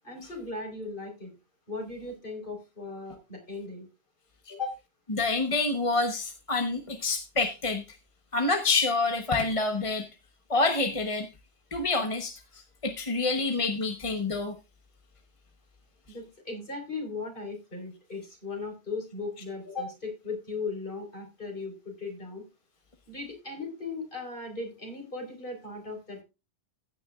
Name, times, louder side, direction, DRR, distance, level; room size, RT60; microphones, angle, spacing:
voice 1, 0.0-1.3 1.7-3.9 4.5-4.7 16.1-22.4 23.1-26.2, left 3 dB, 50° left, 4.7 m, -37 dB
voice 2, 5.1-7.8 8.3-10.1 10.5-11.3 11.7-14.5, left 3 dB, 30° left, 1.1 m, -27 dB
16.0 x 9.5 x 2.4 m
omnidirectional pair, 1.1 m